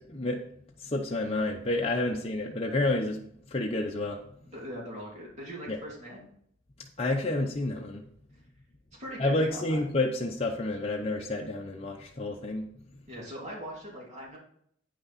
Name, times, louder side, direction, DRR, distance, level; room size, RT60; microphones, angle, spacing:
voice 1, 0.1-0.4 0.8-3.2 3.5-4.2 5.7-5.8 7.0-8.0 9.2-12.7, left 2 dB, 30° left, 0 dB, 0.8 m, -29 dB
voice 2, 4.4-6.3 9.0-9.8 13.1-14.4, equal, 35° right, -4 dB, 2.8 m, -41 dB
9.0 x 6.4 x 4.2 m, 0.66 s
head